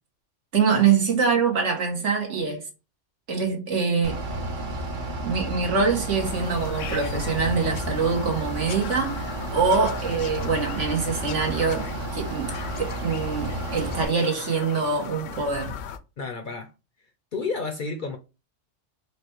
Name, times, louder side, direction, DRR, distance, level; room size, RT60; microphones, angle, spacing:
voice 1, 0.5-2.6 3.3-4.2 5.2-11.9 12.1-15.8, right 5 dB, 75° right, 1.6 m, -24 dB
Bus / Idling, 4.0-14.0, right 2 dB, 45° right, 0.9 m, -32 dB
Bird vocalization bird call bird song, 6.2-16.0, left 8 dB, 85° left, 0.9 m, -37 dB
voice 2, 16.2-16.7 17.3-18.2, left 4 dB, 55° left, 0.6 m, -30 dB
4.9 x 2.2 x 4.4 m
omnidirectional pair, 1.3 m